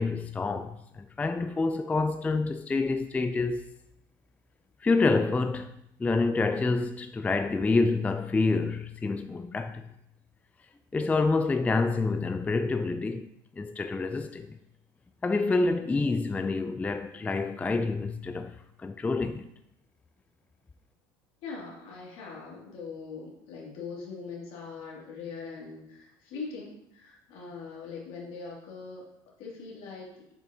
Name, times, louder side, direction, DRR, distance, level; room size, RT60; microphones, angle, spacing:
voice 1, 0.0-3.7 4.8-5.7 6.0-9.8 10.9-13.3 13.6-14.6 15.2-19.5, left 3 dB, 15° left, 0.3 m, -27 dB
voice 2, 21.4-29.0 29.4-30.2, left 4 dB, 70° left, 2.3 m, -41 dB
7.0 x 5.3 x 2.7 m
supercardioid pair, 85°, 11 cm